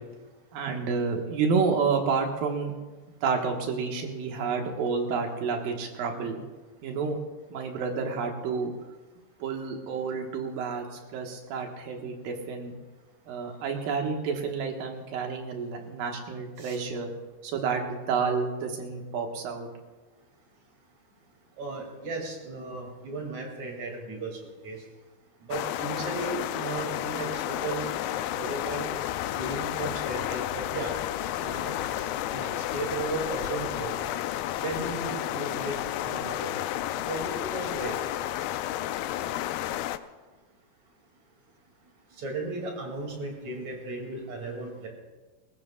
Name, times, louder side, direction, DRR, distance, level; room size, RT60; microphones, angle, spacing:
voice 1, 0.5-2.7 3.2-6.4 6.8-7.2 7.5-8.7 9.4-12.7 13.3-17.1 17.4-19.7, right 5 dB, 65° right, 2 dB, 3.0 m, -29 dB
voice 2, 21.6-24.3 24.6-24.8 25.5-28.9 29.4-30.9 31.4-34.2 34.6-36.5 37.0-37.9 42.2-44.9, right 3 dB, 45° right, 0 dB, 3.7 m, -35 dB
sound 1, 25.5-40.0, left 13 dB, 80° left, 2.1 m, -31 dB
21.5 x 19.0 x 2.4 m, 1.2 s
omnidirectional pair, 4.7 m